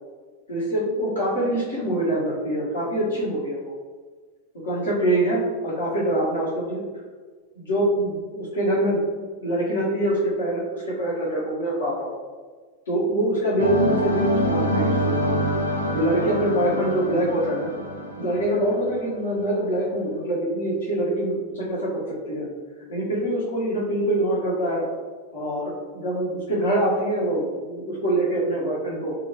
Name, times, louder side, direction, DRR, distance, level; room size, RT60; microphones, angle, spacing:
voice 1, 0.5-3.7 4.6-6.8 7.6-9.0 9.4-12.1 12.9-15.4 15.9-17.7 18.2-22.5 22.9-24.9 25.3-29.2, right 1 dB, 70° left, -7 dB, 1.2 m, -24 dB
sound 1, 13.6-19.5, equal, 85° right, 0.5 m, -26 dB
2.7 x 2.6 x 2.8 m, 1.5 s
figure-of-eight pair, 90°, 0 cm